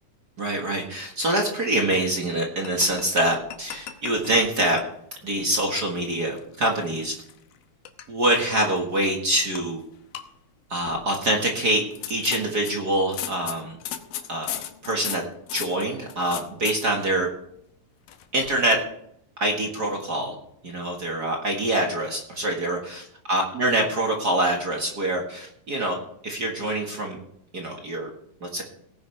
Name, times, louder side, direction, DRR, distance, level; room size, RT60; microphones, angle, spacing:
voice 1, 0.4-4.8 5.2-7.1 8.1-9.8 10.7-11.8 12.1-13.8 14.3-15.2 15.5-17.3 18.3-18.8 19.4-20.3 20.6-23.0 23.3-26.0 26.2-27.2 27.5-28.1 28.4-28.6, right 1 dB, 40° right, 1 dB, 1.5 m, -25 dB
sound 1, 2.6-4.9 5.2-5.4 6.0-7.6 7.9-8.1 8.6-9.0 9.5-9.6 9.9-10.2 10.9-11.2 11.8-16.8 18.1-18.8, left 11 dB, 80° left, 2.6 m, -37 dB
18.0 x 10.5 x 3.4 m, 0.72 s
omnidirectional pair, 4.0 m